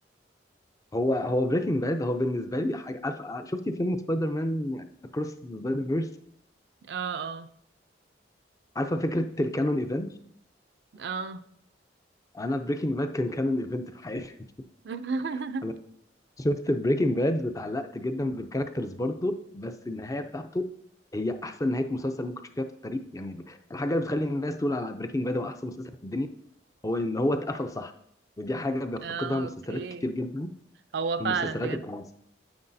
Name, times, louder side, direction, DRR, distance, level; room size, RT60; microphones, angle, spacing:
voice 1, 0.9-4.8 5.1-6.1 8.8-10.2 12.3-14.3 15.6-15.7 16.4-20.6 21.1-26.3 26.8-27.9 28.4-30.5 31.2-32.0, left 1 dB, 20° left, 0.5 m, -29 dB
voice 2, 6.8-7.5 10.9-11.4 14.8-15.7 29.0-30.1 30.9-31.9, right 5 dB, 65° right, 0.4 m, -32 dB
9.5 x 8.1 x 2.7 m
head